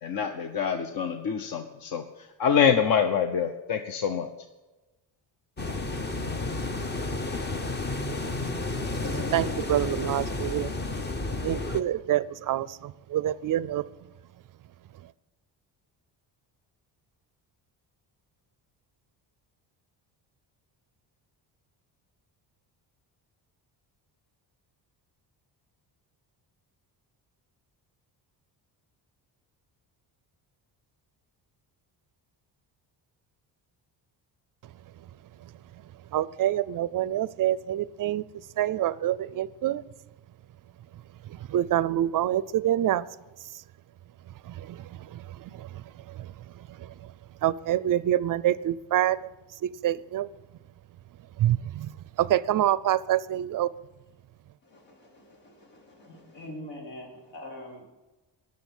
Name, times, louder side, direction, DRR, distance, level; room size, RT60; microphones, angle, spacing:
voice 1, 0.0-4.3, left 7 dB, 50° left, 8 dB, 0.9 m, -26 dB
sound 1, 5.6-11.8, left 2 dB, 25° left, 0.8 m, -31 dB
voice 2, 8.7-10.7 11.4-13.8 36.1-38.2 38.6-39.8 41.3-43.1 44.4-47.1 47.4-49.3 49.6-50.3 51.4-51.9 52.2-53.7, right 12 dB, 50° right, 18 dB, 0.5 m, -27 dB
voice 3, 54.6-57.8, left 1 dB, 75° left, 0 dB, 4.5 m, -44 dB
19.5 x 6.7 x 7.3 m, 1.1 s
cardioid pair, 150°, 43 cm